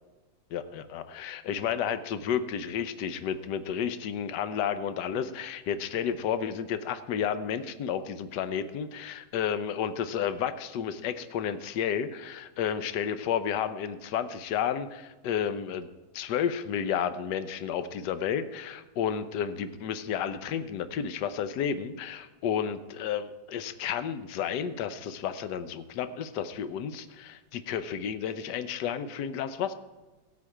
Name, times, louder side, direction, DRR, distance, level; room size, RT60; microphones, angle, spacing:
voice 1, 0.5-15.9 16.1-29.7, left 8 dB, 65° left, 11 dB, 1.2 m, -31 dB
16.5 x 8.4 x 4.8 m, 1.2 s
omnidirectional pair, 2.2 m